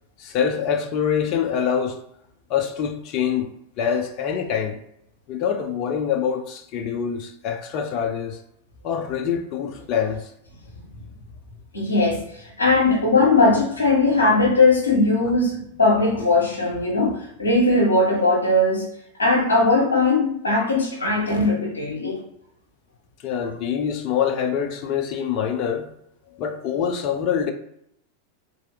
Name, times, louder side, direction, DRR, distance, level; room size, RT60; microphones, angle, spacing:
voice 1, 0.2-2.0 2.5-4.8 5.3-8.4 8.8-10.3 23.2-25.9 26.3-27.5, left 8 dB, 40° left, 0.3 m, -25 dB
voice 2, 11.7-18.9 19.2-22.2, left 2 dB, 75° left, 0.9 m, -19 dB
3.2 x 2.6 x 2.2 m
figure-of-eight pair, 90°, 0 cm